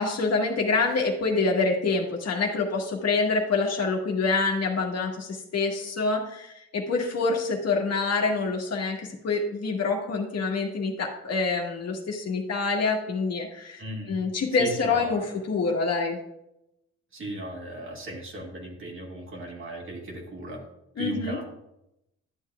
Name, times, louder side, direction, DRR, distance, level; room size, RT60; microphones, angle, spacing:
voice 1, 0.0-13.8 14.1-16.2 21.0-21.4, left 4 dB, 55° left, 1 dB, 1.5 m, -26 dB
voice 2, 13.8-14.2 14.6-15.4 17.1-20.6 21.0-21.5, right 1 dB, 40° right, -1 dB, 2.1 m, -36 dB
11.5 x 7.3 x 2.4 m, 0.85 s
cardioid pair, 90°, 30 cm